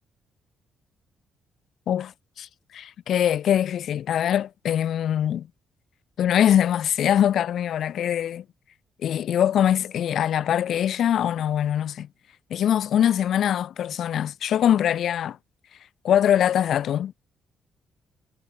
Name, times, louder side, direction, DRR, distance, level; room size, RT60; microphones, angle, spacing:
voice 1, 2.4-5.5 6.2-8.4 9.0-12.1 12.5-15.4 16.0-17.1, left 10 dB, 70° left, 0.3 m, -23 dB
cardioid pair, 90°, 0 cm